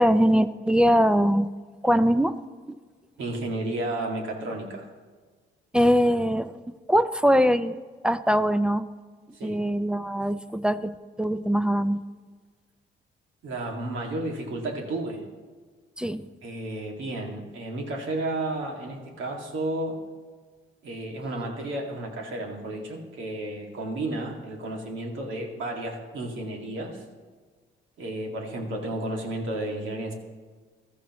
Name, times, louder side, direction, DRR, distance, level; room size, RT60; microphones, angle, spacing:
voice 1, 0.0-1.5 1.8-2.4 2.7-2.8 5.7-7.8 8.0-8.8 9.4-12.0 16.0-16.3, equal, 5° right, 13 dB, 0.4 m, -22 dB
voice 2, 3.2-4.9 9.3-9.6 13.4-15.2 16.4-20.0 20.8-27.0 28.0-30.1, right 1 dB, 80° right, 1 dB, 2.2 m, -32 dB
15.0 x 13.0 x 3.0 m, 1.5 s
cardioid pair, 90°, 20 cm